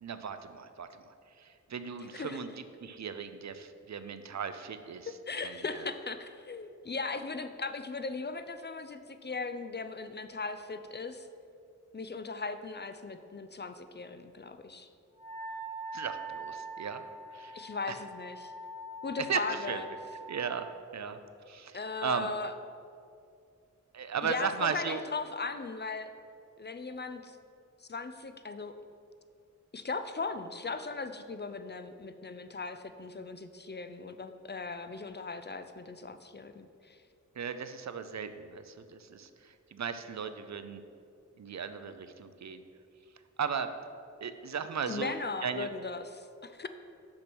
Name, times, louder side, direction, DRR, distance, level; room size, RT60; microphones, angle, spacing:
voice 1, 0.0-5.1 5.4-5.8 15.9-17.0 17.3-17.6 17.9-18.0 19.2-19.8 20.3-21.2 21.5-22.3 23.9-25.0 37.4-40.8 41.4-42.6 43.4-43.7 44.2-45.1 45.4-45.7, right 6 dB, 60° right, 10 dB, 0.5 m, -36 dB
voice 2, 5.3-11.3 11.9-14.9 17.5-18.5 19.0-19.8 21.7-22.5 24.2-26.1 26.6-27.4 27.8-28.7 29.7-37.0 44.9-46.7, left 4 dB, 35° left, 9 dB, 0.4 m, -38 dB
Wind instrument woodwind instrument, 15.2-20.7, right 2 dB, 55° left, 1.9 m, -43 dB
6.1 x 5.9 x 6.1 m, 2.4 s
wide cardioid pair, 85°, 31 cm